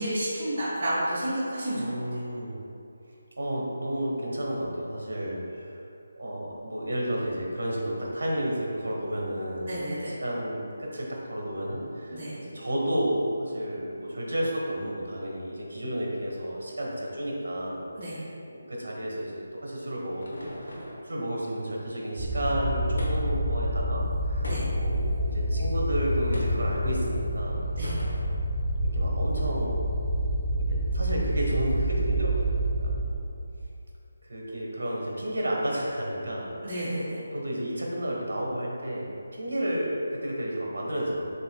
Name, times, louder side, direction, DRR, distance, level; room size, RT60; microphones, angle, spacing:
voice 1, 0.0-1.8 9.7-10.1 12.1-12.4 18.0-18.2 24.4-24.7 27.8-28.0 36.6-37.2, right 1 dB, 40° right, -11 dB, 1.2 m, -30 dB
voice 2, 1.7-2.6 3.4-5.8 6.2-9.8 10.1-18.2 18.5-20.8 21.0-27.7 28.8-29.8 30.1-30.3 30.7-33.1 34.2-36.9 37.3-41.3, equal, 80° right, -2 dB, 1.1 m, -32 dB
sound 1, 19.5-21.1 23.0-23.5 24.4-25.0 26.3-26.7 27.8-28.3, equal, 85° left, 1.0 m, -40 dB
sound 2, 22.2-33.0, right 1 dB, ahead, 0.8 m, -28 dB
6.7 x 2.9 x 2.2 m, 2.6 s
figure-of-eight pair, 160°, 0 cm